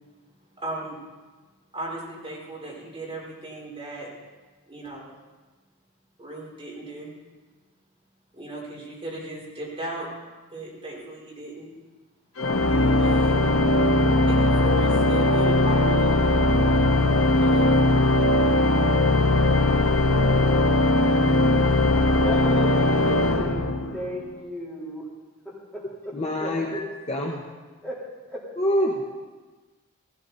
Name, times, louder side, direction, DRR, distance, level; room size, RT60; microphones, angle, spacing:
voice 1, 0.6-1.0 1.7-4.1 4.7-5.1 6.2-7.1 8.3-10.1 10.5-11.7 13.0-13.6 14.3-16.6 17.4-17.8, right 2 dB, 25° right, -4 dB, 4.3 m, -36 dB
Organ, 12.4-24.2, left 2 dB, 75° left, 0.9 m, -20 dB
voice 2, 22.2-25.0 25.4-26.1 26.4-26.8 27.8-28.0 28.3-28.4, equal, 5° left, -7 dB, 3.8 m, -35 dB
voice 3, 25.8-27.4 28.6-29.0, equal, 30° left, 0 dB, 1.1 m, -26 dB
16.0 x 14.5 x 4.2 m, 1.3 s
head